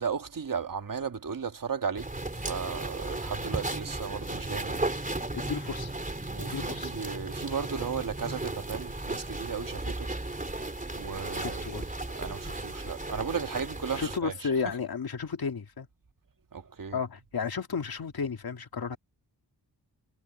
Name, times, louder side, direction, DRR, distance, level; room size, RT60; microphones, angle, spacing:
voice 1, 0.0-4.9 6.3-10.1 10.9-11.8 12.2-14.5 16.5-17.0, right 6 dB, 55° right, 1.5 m, -35 dB
sound 1, 2.0-14.2, right 2 dB, 20° right, 3.5 m, -35 dB
voice 2, 5.3-5.9 6.5-6.9 11.4-11.8 14.0-15.9 16.9-19.0, left 5 dB, 65° left, 2.1 m, -33 dB
wide cardioid pair, 120°, 39 cm